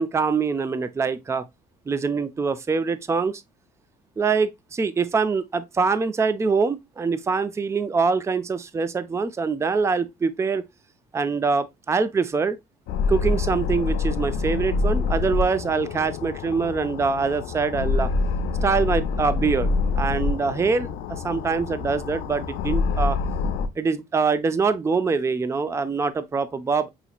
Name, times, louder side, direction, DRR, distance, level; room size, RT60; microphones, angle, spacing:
voice 1, 0.0-1.4 1.9-3.4 4.2-10.6 11.1-12.6 13.1-18.1 18.6-23.2 23.8-26.9, right 4 dB, 15° right, 0.4 m, -24 dB
sound 1, 12.9-23.7, left 4 dB, 90° left, 0.6 m, -26 dB
5.7 x 2.9 x 2.3 m
cardioid pair, 110°, 17 cm